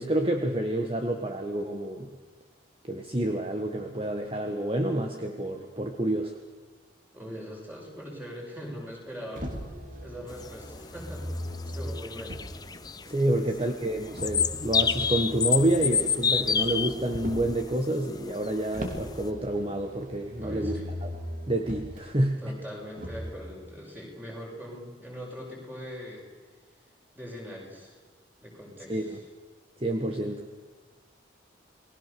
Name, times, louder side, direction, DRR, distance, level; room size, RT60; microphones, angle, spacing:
voice 1, 0.0-2.1 2.9-6.3 13.1-21.1 21.5-22.6 28.9-29.2 29.8-30.4, right 1 dB, 30° right, 4 dB, 1.5 m, -28 dB
voice 2, 7.1-9.5 10.0-12.4 13.3-13.7 20.4-20.9 22.4-26.2 27.1-27.9 28.4-29.2, equal, 10° right, -2 dB, 6.6 m, -41 dB
Motor vehicle (road), 9.4-12.8 14.1-17.6 18.7-22.0 22.9-23.4, equal, 45° right, 3.3 m, -39 dB
sound 1, 10.3-19.3, left 6 dB, 20° left, 0.8 m, -29 dB
29.5 x 20.5 x 7.0 m, 1.4 s
head